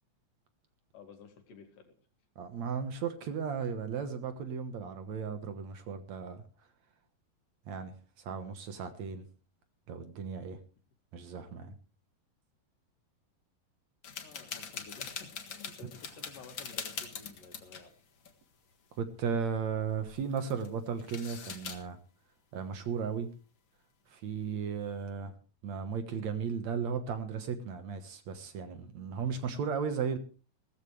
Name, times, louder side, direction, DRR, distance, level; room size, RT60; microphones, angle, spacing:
voice 1, 0.9-1.9 14.2-17.9, left 5 dB, 70° left, 5 dB, 3.9 m, -52 dB
voice 2, 2.4-6.4 7.7-9.3 9.9-10.6 11.1-11.7 19.0-22.0 22.5-23.3 24.1-25.3 25.6-30.2, right 6 dB, 60° right, 9 dB, 2.3 m, -35 dB
sound 1, 14.0-17.9 18.2-18.3 18.7-19.0 20.1-20.7 21.0-21.8, left 6 dB, 45° left, 1.9 m, -42 dB
18.0 x 14.0 x 3.3 m, 0.37 s
omnidirectional pair, 3.9 m